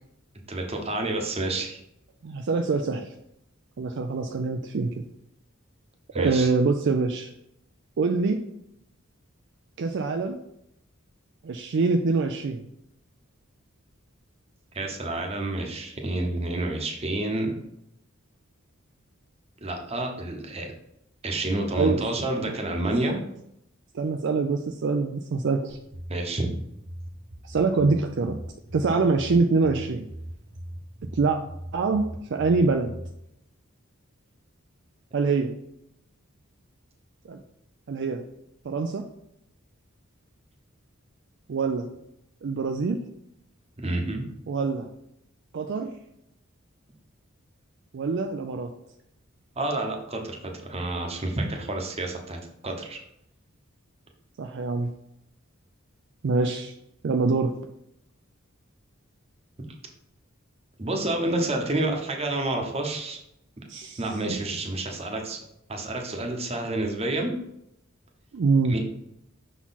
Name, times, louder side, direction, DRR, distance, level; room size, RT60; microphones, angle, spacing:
voice 1, 0.5-1.8 6.1-6.5 14.7-17.6 19.6-20.7 21.2-23.2 26.1-26.5 43.8-44.2 49.6-53.0 60.8-63.2 64.0-65.4 65.7-67.3 68.7-68.8, right 2 dB, 30° right, 2 dB, 0.9 m, -29 dB
voice 2, 2.2-3.1 3.8-5.0 6.1-7.3 8.0-8.4 9.8-10.4 11.4-12.6 21.7-22.0 23.9-25.8 27.4-28.4 28.7-30.1 31.1-31.4 31.7-32.9 35.1-35.6 37.2-37.4 37.9-38.2 38.6-39.1 41.5-41.9 42.4-43.0 44.5-44.9 45.5-45.9 47.9-48.7 54.4-54.9 56.2-56.7 57.0-57.6 63.7-64.0 64.3-64.4 68.3-68.8, right 4 dB, 60° right, 5 dB, 0.4 m, -25 dB
sound 1, 25.7-33.1, right 1 dB, 85° right, 1.0 m, -40 dB
6.0 x 4.0 x 4.1 m, 0.80 s
head